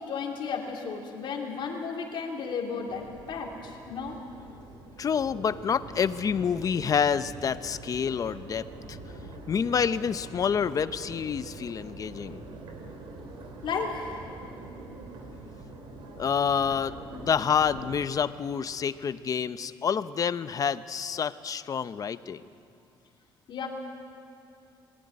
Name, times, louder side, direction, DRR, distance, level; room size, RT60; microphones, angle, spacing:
voice 1, 0.0-4.2 13.6-14.3 23.5-23.7, left 5 dB, 60° left, -1 dB, 2.9 m, -34 dB
Crowd, 2.9-18.0, right 2 dB, 70° right, 3.2 m, -44 dB
voice 2, 5.0-9.0 9.5-12.4 16.2-22.4, left 7 dB, 40° left, 13 dB, 0.7 m, -28 dB
23.0 x 14.5 x 9.7 m, 2.7 s
cardioid pair, 110°, 9 cm